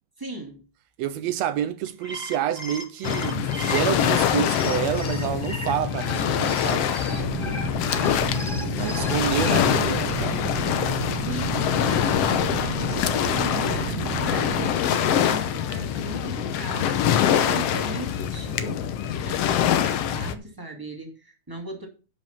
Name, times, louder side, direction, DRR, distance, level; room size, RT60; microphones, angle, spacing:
voice 1, 0.2-0.6 11.1-21.9, right 2 dB, 10° right, 1.7 m, -37 dB
voice 2, 1.0-7.0 7.4-7.6 8.8-10.5, right 11 dB, 80° right, 1.6 m, -28 dB
sound 1, 1.9-9.6, left 1 dB, 10° left, 1.6 m, -36 dB
Waves surf, 3.0-20.3, left 9 dB, 70° left, 1.6 m, -24 dB
sound 2, 7.1-14.7, right 6 dB, 60° right, 1.8 m, -32 dB
10.5 x 5.2 x 5.7 m
omnidirectional pair, 3.4 m